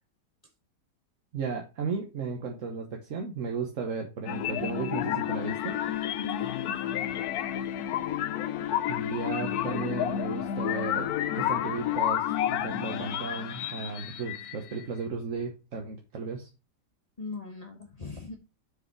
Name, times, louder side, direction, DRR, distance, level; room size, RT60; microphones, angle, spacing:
voice 1, 1.3-5.8 8.9-16.5, right 4 dB, 55° right, 2 dB, 1.3 m, -35 dB
sound 1, 4.3-14.9, left 11 dB, 70° left, 1.1 m, -30 dB
voice 2, 6.2-7.0 17.2-18.4, left 4 dB, 30° left, 1 dB, 1.0 m, -39 dB
6.7 x 5.0 x 4.6 m, 0.31 s
omnidirectional pair, 1.8 m